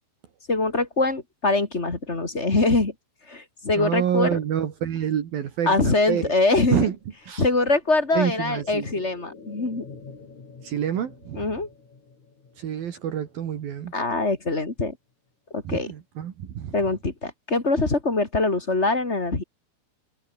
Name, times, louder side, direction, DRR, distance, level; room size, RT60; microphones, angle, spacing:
voice 1, 0.5-2.9 3.3-4.4 5.7-6.9 7.4-9.9 11.3-11.7 13.9-15.0 15.5-15.9 16.7-19.4, left 3 dB, 20° left, 2.3 m, -23 dB
voice 2, 3.8-6.3 6.7-7.0 7.3-7.5 8.1-8.9 10.6-11.5 12.6-13.9 15.7-16.7, right 9 dB, 65° right, 3.8 m, -27 dB
sound 1, 5.1-14.8 15.1-15.2, left 4 dB, 45° left, 6.5 m, -49 dB
omnidirectional pair, 4.7 m